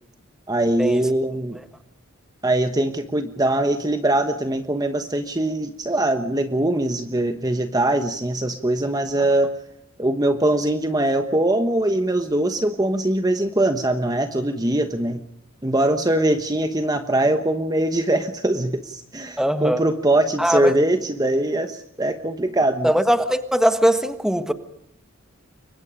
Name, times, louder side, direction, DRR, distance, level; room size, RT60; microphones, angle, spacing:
voice 1, 0.5-1.6 2.4-9.6 10.0-15.2 15.6-22.9, right 1 dB, 20° right, 1.2 m, -22 dB
voice 2, 19.4-19.8 20.4-20.7 22.8-24.5, equal, 5° right, 1.5 m, -20 dB
29.5 x 24.0 x 5.1 m
head